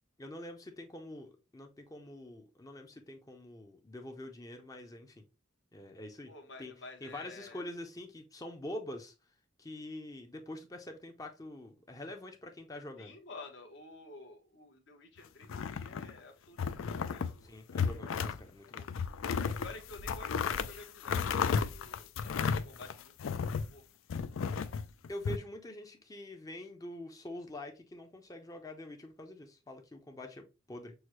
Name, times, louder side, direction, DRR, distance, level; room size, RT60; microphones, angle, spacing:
voice 1, 0.2-5.2 5.7-6.3 6.6-6.7 7.0-9.1 9.6-13.2 17.4-18.8 25.1-30.9, left 1 dB, 20° left, 0.5 m, -45 dB
voice 2, 6.3-7.6 13.0-17.6 19.4-23.8, left 3 dB, 65° left, 1.0 m, -51 dB
sound 1, 15.4-16.2 16.6-17.4 17.7-18.4 18.7-23.7 24.1-25.4, left 6 dB, 85° left, 0.4 m, -33 dB
6.3 x 2.1 x 2.9 m
head